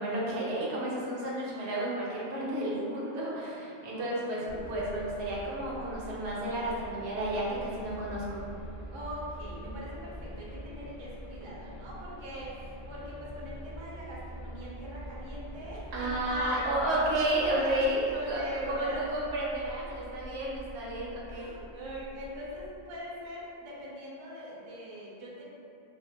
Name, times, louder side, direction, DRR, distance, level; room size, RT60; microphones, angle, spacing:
voice 1, 0.0-8.4 15.9-21.5, right 1 dB, 75° right, -5 dB, 0.9 m, -32 dB
voice 2, 3.5-4.6 8.9-16.7 17.5-19.0 19.9-20.3 21.3-25.4, equal, 40° right, -6 dB, 0.4 m, -42 dB
sound 1, 4.5-22.8, right 1 dB, 45° left, 0.3 m, -45 dB
2.4 x 2.4 x 2.7 m, 2.6 s
omnidirectional pair, 1.1 m